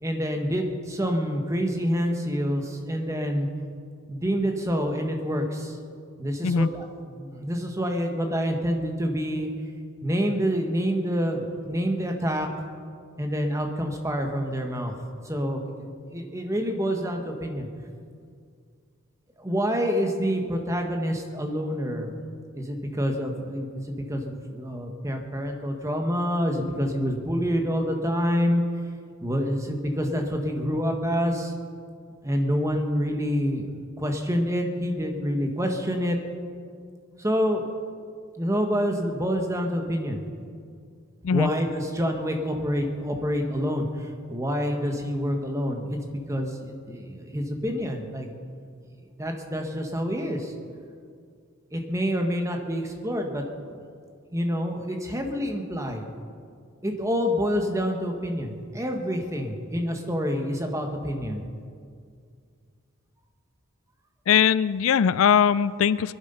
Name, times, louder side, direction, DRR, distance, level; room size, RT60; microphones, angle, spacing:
voice 1, 0.0-3.5 4.1-5.8 6.2-9.5 10.0-12.5 13.2-14.9 15.2-17.7 19.4-22.1 22.5-28.6 29.2-31.5 32.2-36.2 37.2-37.6 38.4-40.2 41.3-48.3 49.2-50.5 51.7-53.4 54.3-56.0 56.8-61.4, equal, 15° right, 3 dB, 1.4 m, -27 dB
voice 2, 64.3-66.1, left 7 dB, 75° left, 17 dB, 0.4 m, -20 dB
20.0 x 12.0 x 5.6 m, 2.2 s
head